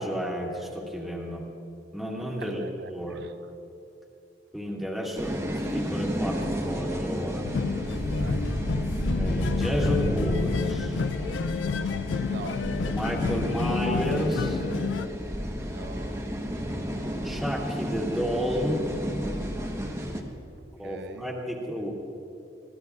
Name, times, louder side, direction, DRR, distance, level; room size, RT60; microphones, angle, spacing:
voice 1, 0.0-1.4 1.9-3.2 4.5-7.5 9.1-10.9 12.9-14.6 17.2-18.8 20.8-21.9, equal, ahead, -3 dB, 1.9 m, -31 dB
sound 1, 5.2-20.2, equal, 15° right, 1.1 m, -31 dB
sound 2, 7.4-15.1, left 5 dB, 80° left, 0.4 m, -30 dB
voice 2, 8.1-8.4 12.2-12.6 15.6-16.2 20.8-21.3, right 4 dB, 65° right, 11 dB, 0.6 m, -42 dB
23.0 x 16.0 x 2.4 m, 2.7 s
head